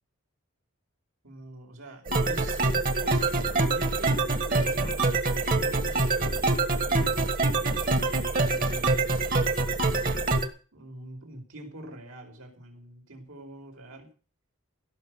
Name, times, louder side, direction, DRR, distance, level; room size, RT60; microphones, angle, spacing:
voice 1, 1.2-7.3 8.4-9.4 10.7-14.1, right 1 dB, 80° right, 1 dB, 5.0 m, -45 dB
sound 1, 2.1-10.5, right 3 dB, 40° right, 1.7 m, -25 dB
16.5 x 6.6 x 8.0 m, 0.38 s
head